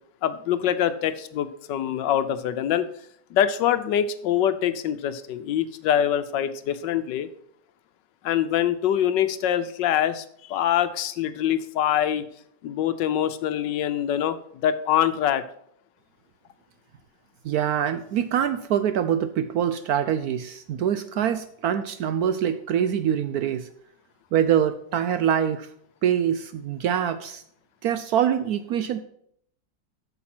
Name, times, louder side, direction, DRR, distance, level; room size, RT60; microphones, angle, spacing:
voice 1, 0.2-2.9 3.3-7.3 8.2-12.2 12.6-15.4, left 10 dB, 75° left, 12 dB, 1.3 m, -24 dB
voice 2, 17.4-23.7 24.3-25.7 26.0-27.4 27.8-29.0, right 9 dB, 70° right, 11 dB, 0.9 m, -24 dB
8.5 x 6.8 x 5.9 m, 0.68 s
omnidirectional pair, 2.0 m